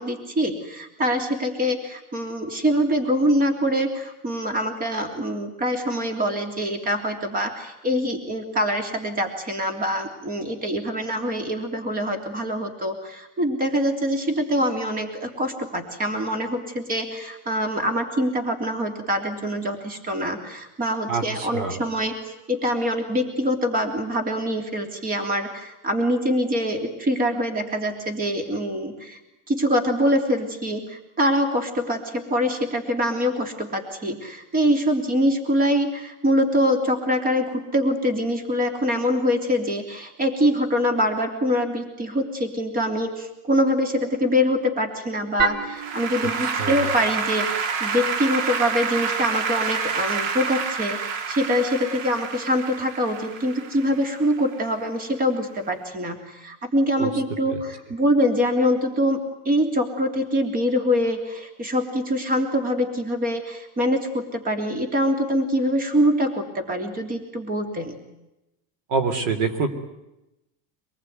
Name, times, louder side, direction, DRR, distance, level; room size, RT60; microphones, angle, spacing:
voice 1, 0.0-29.2 29.5-68.0, equal, 20° right, 6 dB, 3.3 m, -24 dB
voice 2, 21.1-21.8 46.6-46.8 57.0-57.1 68.9-69.7, right 4 dB, 55° right, 9 dB, 3.7 m, -25 dB
Applause / Keyboard (musical), 45.4-54.7, right 6 dB, 85° right, 2.5 m, -28 dB
26.0 x 20.0 x 9.5 m, 0.93 s
cardioid pair, 150°, 37 cm